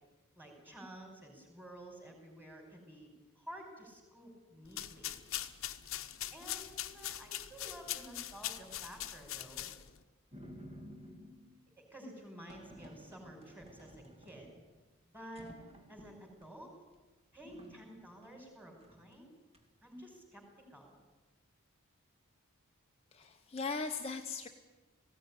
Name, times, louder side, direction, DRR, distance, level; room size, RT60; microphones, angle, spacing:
voice 1, 0.4-3.1 3.4-5.1 6.3-9.7 11.8-14.5 15.1-15.5 15.9-16.7 17.3-19.3 19.8-20.4 20.7-21.0, right 1 dB, 10° right, 2 dB, 5.4 m, -51 dB
sound 1, 4.7-10.0, left 13 dB, 60° left, 1.0 m, -42 dB
sound 2, 10.3-11.6 12.5-14.8 15.2-16.5 16.9-17.0 17.4-18.4 18.8-19.1 19.5-20.0, equal, 30° right, 2.4 m, -54 dB
voice 2, 23.1-24.5, left 4 dB, 25° left, 3 dB, 0.8 m, -38 dB
19.5 x 16.5 x 10.0 m, 1.2 s
head